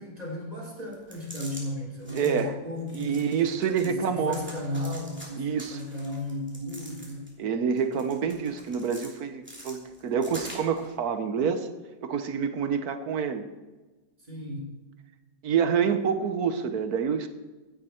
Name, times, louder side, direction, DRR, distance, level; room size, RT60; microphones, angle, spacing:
voice 1, 0.0-3.3 3.8-7.3 14.2-14.8, left 1 dB, 20° right, -3 dB, 3.7 m, -35 dB
sound 1, 0.9-1.6 2.0-2.4 2.9-3.9 4.3-5.3 5.6-7.4 7.8-9.1 9.4-10.9, equal, 5° right, 2.9 m, -45 dB
voice 2, 2.1-2.5 2.9-4.4 5.4-5.8 7.4-11.7 12.0-13.5 15.4-17.3, right 7 dB, 60° right, 9 dB, 1.4 m, -27 dB
15.5 x 10.0 x 4.4 m, 1.2 s
omnidirectional pair, 1.9 m